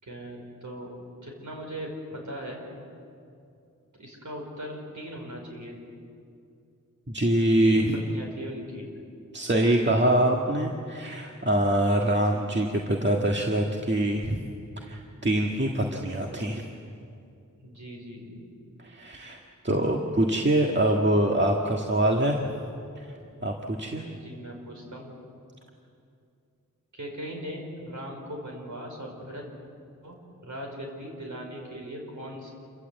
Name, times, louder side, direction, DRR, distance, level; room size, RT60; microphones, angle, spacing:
voice 1, 0.0-0.9 1.2-2.6 4.0-5.8 7.6-8.9 12.3-12.7 17.6-18.4 24.0-25.1 26.9-29.4 30.0-30.2 30.4-32.5, equal, 65° right, 0 dB, 5.1 m, -39 dB
voice 2, 7.1-7.9 9.3-14.4 14.9-16.6 18.8-19.4 19.6-22.4 23.0-23.1 23.4-24.1, right 1 dB, 35° right, 0 dB, 1.8 m, -24 dB
28.0 x 14.5 x 8.1 m, 2.5 s
cardioid pair, 50°, 32 cm